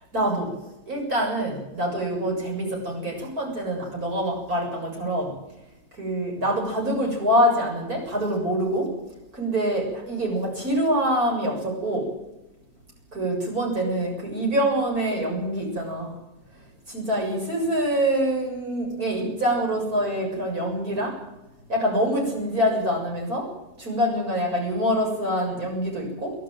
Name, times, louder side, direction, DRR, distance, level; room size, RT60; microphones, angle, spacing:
voice 1, 0.1-0.5 0.9-5.3 6.0-8.9 9.3-12.1 13.1-16.1 16.9-21.1 21.7-23.5 23.8-26.3, equal, 60° right, -1 dB, 7.9 m, -25 dB
23.5 x 14.0 x 9.3 m, 0.96 s
omnidirectional pair, 1.8 m